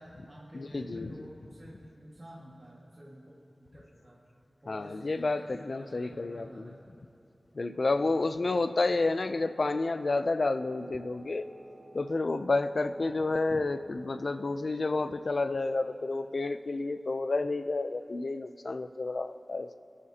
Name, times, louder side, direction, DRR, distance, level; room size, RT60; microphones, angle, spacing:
voice 1, 0.0-4.2 4.6-5.5 5.7-6.9 8.0-8.3, equal, 30° right, -6 dB, 1.8 m, -50 dB
voice 2, 0.5-1.3 4.7-6.7 7.5-11.5 11.9-19.8, left 3 dB, 65° left, 10 dB, 0.5 m, -30 dB
Wind instrument woodwind instrument, 8.8-14.5, right 2 dB, 60° right, 3.0 m, -55 dB
29.5 x 10.0 x 2.9 m, 2.7 s
wide cardioid pair, 70°, 0 cm